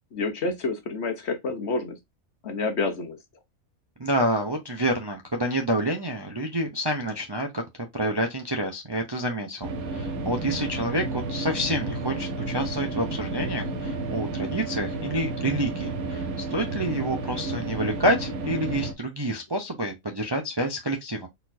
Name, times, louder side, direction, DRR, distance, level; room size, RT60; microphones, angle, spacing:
voice 1, 0.1-2.0 2.4-3.2, left 3 dB, 55° left, 1.1 m, -28 dB
voice 2, 4.0-7.6 7.9-21.3, right 1 dB, 25° right, 0.5 m, -28 dB
sound 1, 9.6-18.9, right 3 dB, 85° right, 1.5 m, -31 dB
4.5 x 4.1 x 2.6 m
omnidirectional pair, 1.5 m